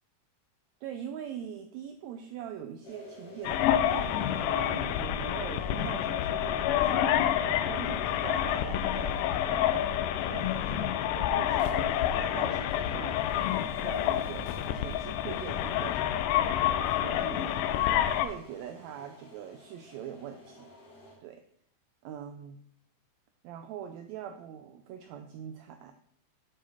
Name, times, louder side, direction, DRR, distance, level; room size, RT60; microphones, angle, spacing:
voice 1, 0.8-9.8 10.3-13.2 13.5-17.7 18.0-20.7 21.2-21.4 22.0-22.6 23.4-26.1, right 9 dB, 80° right, 7 dB, 1.6 m, -43 dB
sound 1, 2.8-21.1, left 1 dB, 50° left, 2.8 m, -50 dB
sound 2, 3.4-18.3, left 11 dB, 90° left, 2.1 m, -28 dB
sound 3, 11.6-12.2 13.2-13.3 13.8-14.0 14.5-15.0, left 7 dB, 70° left, 1.7 m, -49 dB
8.7 x 5.0 x 4.2 m, 0.66 s
omnidirectional pair, 3.6 m